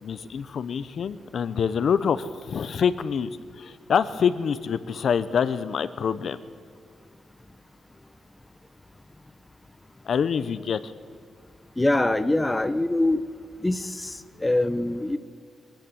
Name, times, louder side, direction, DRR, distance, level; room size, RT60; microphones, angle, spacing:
voice 1, 0.0-3.3 3.5-6.4 10.0-10.9, left 7 dB, 55° left, 14 dB, 0.8 m, -26 dB
voice 2, 11.8-13.2 13.6-13.8 14.4-15.2, left 2 dB, 10° left, 11 dB, 0.8 m, -23 dB
23.0 x 13.5 x 9.1 m, 2.2 s
wide cardioid pair, 145°, 0 cm